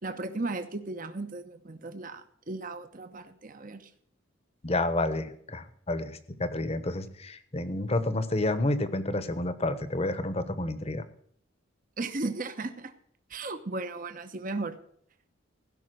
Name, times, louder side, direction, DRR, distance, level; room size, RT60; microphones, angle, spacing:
voice 1, 0.0-3.9 12.0-12.9 13.3-14.8, right 2 dB, 45° right, 9 dB, 1.0 m, -36 dB
voice 2, 4.6-11.0, left 2 dB, 30° left, 12 dB, 1.0 m, -30 dB
16.0 x 5.8 x 7.7 m, 0.65 s
head